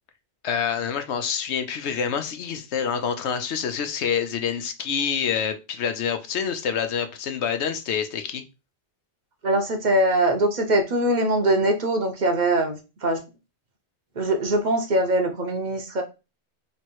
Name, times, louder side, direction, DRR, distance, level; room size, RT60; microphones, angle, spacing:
voice 1, 0.4-8.4, left 7 dB, 85° left, 1.0 m, -27 dB
voice 2, 9.4-13.2 14.2-16.0, right 1 dB, 45° right, 0.9 m, -22 dB
3.2 x 3.0 x 4.5 m
omnidirectional pair, 1.1 m